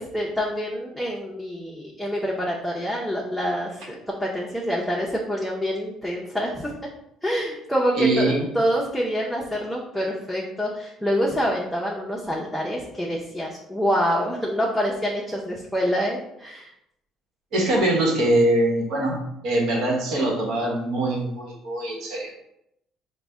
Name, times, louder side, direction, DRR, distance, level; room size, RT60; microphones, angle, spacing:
voice 1, 0.0-6.7 7.2-16.7, equal, 5° left, -4 dB, 0.6 m, -26 dB
voice 2, 8.0-8.5 17.5-22.3, right 1 dB, 70° right, -2 dB, 1.0 m, -23 dB
4.0 x 2.1 x 3.5 m, 0.80 s
supercardioid pair, 90°, 0 cm